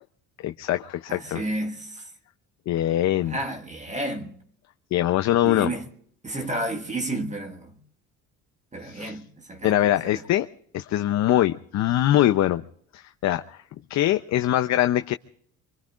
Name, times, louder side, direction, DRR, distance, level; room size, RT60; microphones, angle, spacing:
voice 1, 0.4-1.4 2.7-3.4 4.9-5.7 6.3-6.4 8.8-9.2 9.6-10.5 10.7-12.6 12.9-13.6 13.9-15.1, left 13 dB, 60° left, 0.7 m, -23 dB
voice 2, 1.1-2.1 3.1-4.4 5.4-5.8 6.2-7.8 8.7-10.2, right 1 dB, 25° right, 1.7 m, -32 dB
24.5 x 24.5 x 2.4 m
cardioid pair, 105°, 31 cm